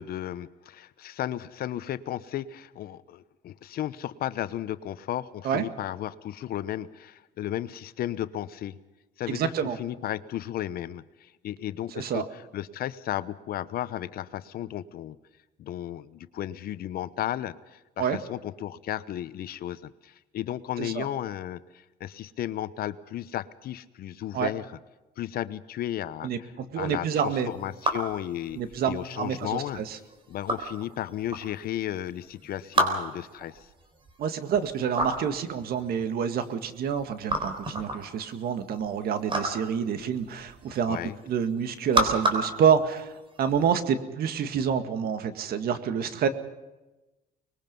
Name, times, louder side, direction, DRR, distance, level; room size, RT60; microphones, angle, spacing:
voice 1, 0.0-8.8 9.2-15.2 15.6-24.8 25.2-28.6 28.9-29.8 30.3-33.7 40.9-41.2, left 12 dB, 65° left, 14 dB, 1.0 m, -34 dB
voice 2, 9.3-9.8 11.9-12.2 18.0-18.2 20.8-21.1 24.3-24.5 26.2-27.5 28.5-30.0 34.2-41.0 41.3-46.3, right 7 dB, 65° right, 9 dB, 2.0 m, -28 dB
sound 1, 27.3-43.6, right 2 dB, 30° right, 4.1 m, -32 dB
25.0 x 21.0 x 5.4 m, 1.1 s
cardioid pair, 110°, 17 cm